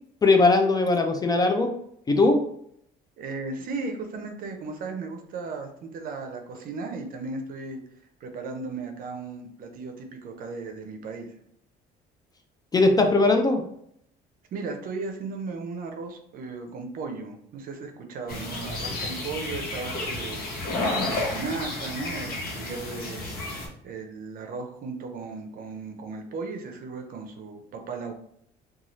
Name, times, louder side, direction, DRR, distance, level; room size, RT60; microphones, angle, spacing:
voice 1, 0.2-1.7 2.1-2.4 12.7-13.6, left 3 dB, 25° left, 4 dB, 0.4 m, -20 dB
voice 2, 3.2-7.8 8.2-11.3 14.5-20.4 21.1-23.4 23.8-28.1, right 4 dB, 55° right, 4 dB, 0.6 m, -36 dB
sound 1, 18.3-23.7, left 2 dB, 60° left, 1.0 m, -31 dB
2.6 x 2.3 x 3.0 m, 0.69 s
cardioid pair, 110°, 17 cm